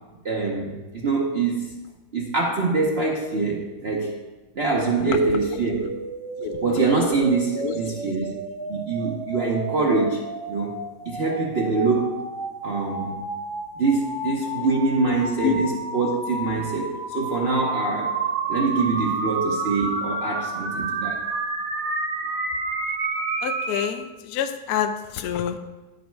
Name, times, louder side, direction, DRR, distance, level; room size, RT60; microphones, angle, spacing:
voice 1, 0.2-1.7 2.1-4.1 4.6-5.9 6.6-8.3 8.7-10.2 10.5-10.8 11.0-12.2 12.6-13.3 13.8-18.2 18.5-21.3, right 3 dB, 50° right, -2 dB, 0.8 m, -24 dB
sound 1, 5.0-23.9, right 3 dB, 70° right, 2.2 m, -31 dB
voice 2, 7.6-7.9 15.4-15.5 23.4-25.6, left 9 dB, 70° left, 7 dB, 1.0 m, -27 dB
10.0 x 5.3 x 4.5 m, 1.1 s
omnidirectional pair, 1.9 m